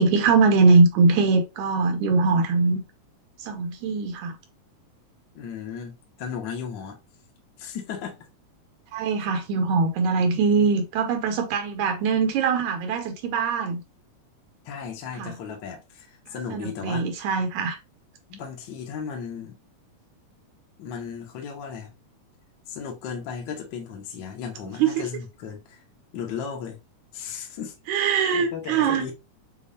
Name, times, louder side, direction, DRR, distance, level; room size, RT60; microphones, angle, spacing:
voice 1, 0.0-2.8 3.4-4.3 8.9-13.8 15.2-15.3 16.5-17.8 24.8-25.1 27.9-29.1, right 4 dB, 85° right, 2.0 m, -22 dB
voice 2, 5.3-7.0 7.6-8.2 14.6-17.3 18.3-19.6 20.8-21.9 22.7-25.8 26.1-26.8 27.1-27.7 28.3-29.1, left 7 dB, 60° left, 1.2 m, -35 dB
6.8 x 2.4 x 2.7 m
omnidirectional pair, 3.4 m